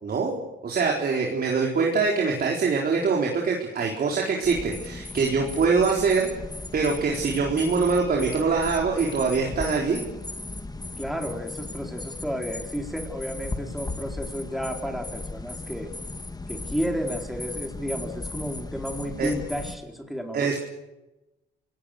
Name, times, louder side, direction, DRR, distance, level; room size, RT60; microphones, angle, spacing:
voice 1, 0.0-6.3 6.7-10.0 19.2-19.3 20.3-20.6, right 4 dB, 50° right, -1 dB, 4.1 m, -24 dB
sound 1, 4.4-19.8, left 2 dB, 20° left, 2.2 m, -36 dB
voice 2, 11.0-15.9 16.5-20.6, equal, ahead, 3 dB, 4.3 m, -32 dB
28.0 x 18.5 x 6.7 m, 1.0 s
cardioid pair, 90°, 20 cm